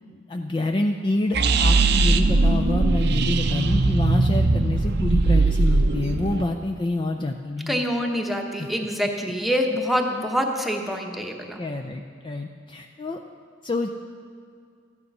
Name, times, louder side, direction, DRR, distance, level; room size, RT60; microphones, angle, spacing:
voice 1, 0.1-7.8 8.6-8.7 11.6-13.2 13.6-13.9, left 2 dB, 25° left, 4 dB, 0.4 m, -27 dB
sound 1, 1.3-6.4, right 3 dB, 60° right, 0.6 m, -20 dB
voice 2, 7.7-11.6, equal, ahead, 2 dB, 1.0 m, -25 dB
14.0 x 9.7 x 5.4 m, 2.3 s
head